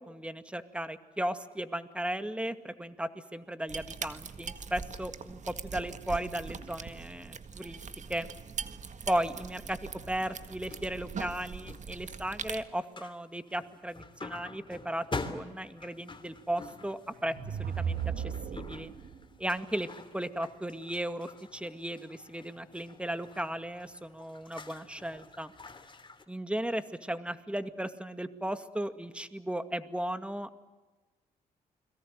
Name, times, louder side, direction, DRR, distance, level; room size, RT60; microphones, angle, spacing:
voice 1, 0.1-7.8 8.1-8.3 9.1-9.8 10.1-18.9 19.4-19.9 20.1-25.5 26.3-30.6, right 1 dB, 5° right, 9 dB, 2.2 m, -36 dB
sound 1, 3.7-12.6, right 6 dB, 50° right, 1.8 m, -42 dB
sound 2, 10.3-12.2 12.6-13.2 13.5-26.2, left 3 dB, 30° left, 3.0 m, -46 dB
sound 3, 17.1-19.2, right 7 dB, 65° right, 2.3 m, -35 dB
29.5 x 22.5 x 7.7 m, 1.2 s
supercardioid pair, 55°, 16 cm